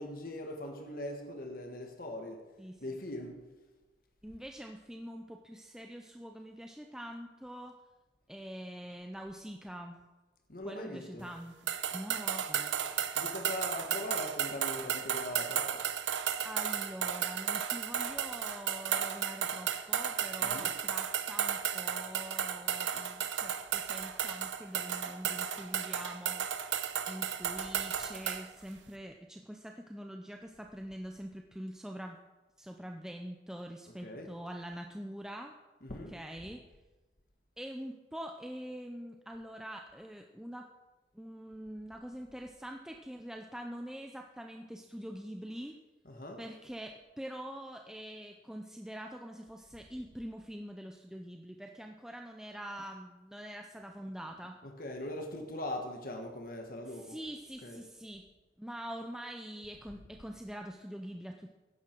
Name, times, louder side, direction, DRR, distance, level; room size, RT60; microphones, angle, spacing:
voice 1, 0.0-2.4 2.8-3.4 10.5-11.3 13.1-15.8 20.4-20.8 34.0-34.3 35.8-36.1 46.0-46.4 54.6-57.2 57.6-57.8, left 1 dB, 50° left, 1.5 m, -41 dB
voice 2, 4.2-7.7 8.3-10.0 10.6-13.1 16.4-26.5 27.1-32.2 32.6-35.6 36.1-36.6 37.6-40.7 41.1-45.8 46.4-54.6 56.9-58.3 58.6-61.5, equal, 5° right, 0.6 m, -44 dB
sound 1, 11.7-28.5, right 9 dB, 90° right, 0.8 m, -34 dB
15.5 x 11.0 x 4.6 m
head